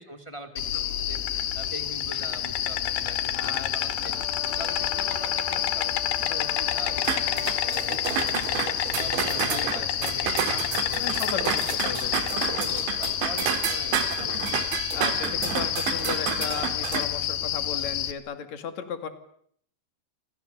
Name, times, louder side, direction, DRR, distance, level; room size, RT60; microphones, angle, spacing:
voice 1, 0.0-4.1 4.5-11.0 11.3-14.5, right 1 dB, 15° left, 6 dB, 1.1 m, -42 dB
Insect, 0.6-18.1, left 11 dB, 70° left, 3.1 m, -28 dB
voice 2, 3.3-4.3 9.5-10.2 11.0-12.1 14.9-19.1, left 8 dB, 45° left, 8 dB, 2.8 m, -35 dB
Brass instrument, 4.1-8.0, left 8 dB, 85° left, 5.9 m, -41 dB
sound 1, 7.0-17.0, right 9 dB, 80° right, 4.2 m, -30 dB
29.5 x 26.0 x 6.9 m, 0.66 s
omnidirectional pair, 5.2 m